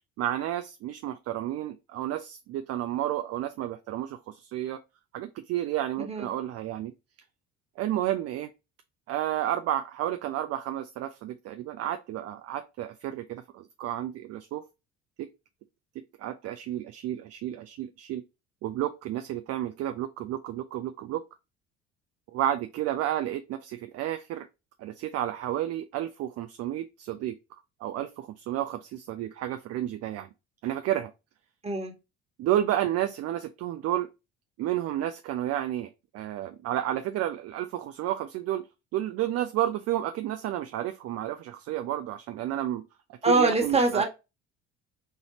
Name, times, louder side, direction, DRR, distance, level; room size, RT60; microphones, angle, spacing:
voice 1, 0.2-4.8 5.1-6.9 7.8-8.5 9.1-14.6 15.2-15.3 16.2-18.2 18.6-21.2 22.3-24.5 24.8-27.3 27.8-30.3 30.6-31.1 32.4-34.1 34.6-38.7 38.9-42.8 43.2-44.0, right 12 dB, 45° right, 0.5 m, -31 dB
voice 2, 6.0-6.3 31.6-31.9 43.2-44.0, right 2 dB, 15° right, 1.5 m, -24 dB
3.9 x 3.1 x 2.8 m
figure-of-eight pair, 55°, 36 cm